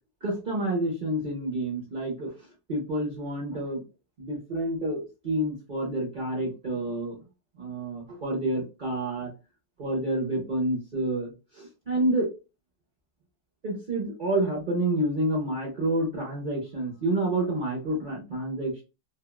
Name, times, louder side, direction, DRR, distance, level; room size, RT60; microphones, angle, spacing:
voice 1, 0.2-2.3 2.7-3.8 4.2-7.2 7.6-9.3 9.8-12.3 13.6-18.8, right 1 dB, 55° right, -2 dB, 0.5 m, -29 dB
3.4 x 2.2 x 2.2 m, 0.29 s
omnidirectional pair, 1.9 m